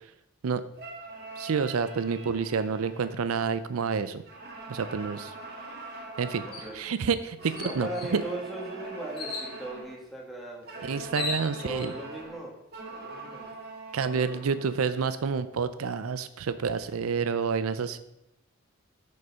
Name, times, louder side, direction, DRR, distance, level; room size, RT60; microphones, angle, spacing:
sound 1, 0.7-3.8 4.2-6.8 7.4-10.0 10.7-14.9, right 2 dB, 50° right, 1.7 m, -43 dB
voice 1, 1.4-4.2 4.7-5.3 6.2-6.4 6.7-8.2 10.8-11.9 13.9-18.0, right 5 dB, 80° right, 12 dB, 0.5 m, -29 dB
sound 2, 6.5-6.7 7.1-7.2 7.6-8.2 9.2-9.5 10.6-10.7 11.0-11.9, left 3 dB, 45° left, 1.8 m, -36 dB
voice 2, 7.6-11.2 11.6-12.5 12.9-13.5 14.1-14.6, right 1 dB, ahead, -3 dB, 1.9 m, -38 dB
7.9 x 5.4 x 5.5 m, 0.86 s
head